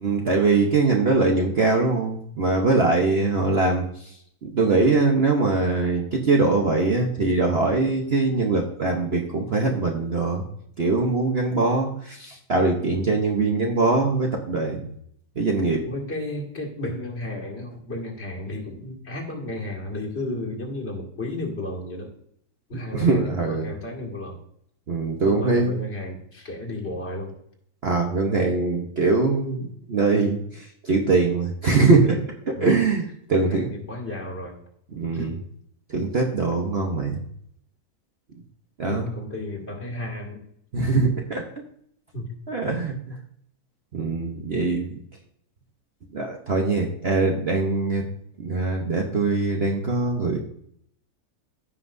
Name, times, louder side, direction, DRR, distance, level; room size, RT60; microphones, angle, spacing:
voice 1, 0.0-3.8 4.5-10.4 10.8-14.9 15.4-15.8 22.9-23.7 24.9-25.8 27.8-29.6 29.9-33.7 34.9-35.3 35.9-37.2 38.8-39.1 40.7-41.4 42.5-42.9 43.9-44.9 46.1-48.0 48.4-50.4, right 3 dB, 45° right, 0 dB, 1.0 m, -22 dB
voice 2, 15.9-22.1 22.7-24.4 25.2-27.4 32.5-32.8 33.3-34.6 35.1-35.4 38.8-40.4 42.1-42.4, left 2 dB, 40° left, -2 dB, 2.3 m, -33 dB
15.5 x 5.8 x 2.6 m, 0.69 s
omnidirectional pair, 1.8 m